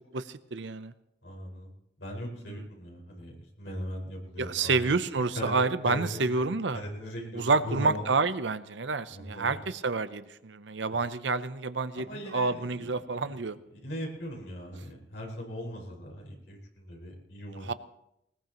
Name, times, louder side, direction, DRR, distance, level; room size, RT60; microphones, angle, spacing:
voice 1, 0.1-0.9 4.4-6.8 7.3-13.6 17.6-17.7, right 3 dB, 80° right, 12 dB, 0.8 m, -29 dB
voice 2, 1.2-1.7 2.0-4.9 5.4-5.6 5.8-6.5 6.7-8.0 9.1-9.6 11.9-12.9 13.2-13.3 13.7-17.8, equal, 75° left, -2 dB, 5.4 m, -39 dB
20.5 x 20.0 x 3.1 m, 0.80 s
head